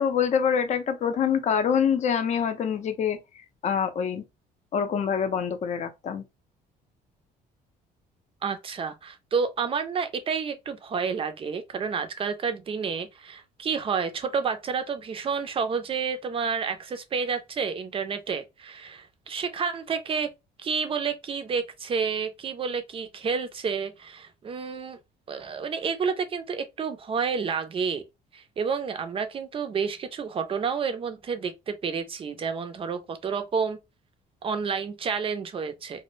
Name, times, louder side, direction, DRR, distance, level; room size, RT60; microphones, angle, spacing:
voice 1, 0.0-3.2 3.6-4.2 4.7-6.2, left 7 dB, 45° left, 0.5 m, -25 dB
voice 2, 8.4-20.3 20.6-25.0 25.3-28.0 28.3-33.8 34.4-36.0, right 6 dB, 35° right, 0.5 m, -30 dB
2.2 x 2.0 x 3.1 m
cardioid pair, 110°, 17 cm